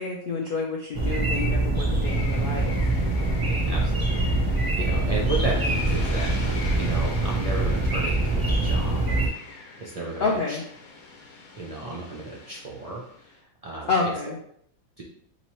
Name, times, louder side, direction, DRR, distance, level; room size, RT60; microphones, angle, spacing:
voice 1, 0.0-2.8 10.2-10.6 13.9-14.4, left 4 dB, 65° left, -1 dB, 0.5 m, -28 dB
sound 1, 0.9-9.3, right 2 dB, 25° right, 0.5 m, -24 dB
sound 2, 2.0-13.4, left 3 dB, 85° left, 1.2 m, -42 dB
voice 2, 3.4-4.2 4.8-6.4 6.8-9.2 9.8-10.6 11.5-13.0 13.6-13.9 15.0-15.1, right 2 dB, 75° right, -3 dB, 0.3 m, -33 dB
4.2 x 2.9 x 3.0 m, 0.69 s
omnidirectional pair, 1.5 m